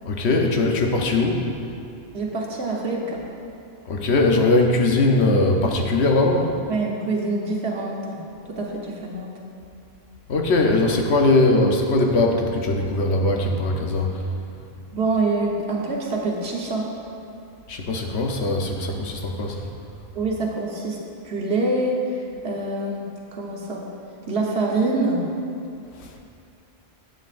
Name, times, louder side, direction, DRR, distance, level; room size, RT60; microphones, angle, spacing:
voice 1, 0.0-1.4 3.9-6.5 10.3-14.2 17.7-19.6 26.0-26.2, left 2 dB, 90° left, 2 dB, 1.1 m, -20 dB
voice 2, 2.1-3.2 6.7-8.2 8.5-9.3 14.9-16.9 20.1-21.0 21.2-23.1 23.3-23.9 24.3-25.2, right 2 dB, 80° right, -1 dB, 1.3 m, -25 dB
11.5 x 8.0 x 2.5 m, 2.5 s
omnidirectional pair, 1.1 m